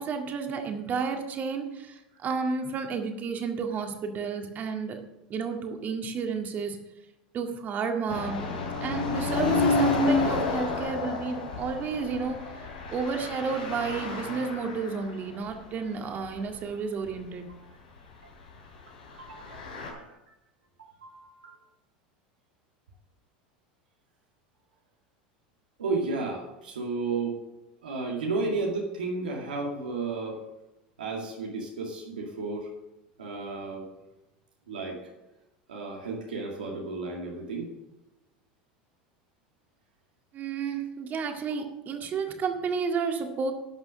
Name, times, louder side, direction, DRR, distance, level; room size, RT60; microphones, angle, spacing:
voice 1, 0.0-5.0 5.3-6.8 7.3-8.4 8.8-12.4 12.9-17.5 40.3-43.5, right 5 dB, 40° right, 4 dB, 1.9 m, -31 dB
sound 1, 8.1-15.1 15.4-15.5 16.2-16.7 17.0-17.2 19.1-19.9, left 3 dB, 85° left, 3.3 m, -29 dB
voice 2, 19.2-19.6 19.9-20.1 21.0-21.6 25.8-27.4 27.8-30.4 31.0-32.7 33.2-33.9 34.7-35.1 35.7-37.7 41.5-41.6, right 3 dB, 90° right, -2 dB, 2.1 m, -33 dB
11.5 x 6.2 x 6.4 m, 0.94 s
hypercardioid pair, 90°, 5 cm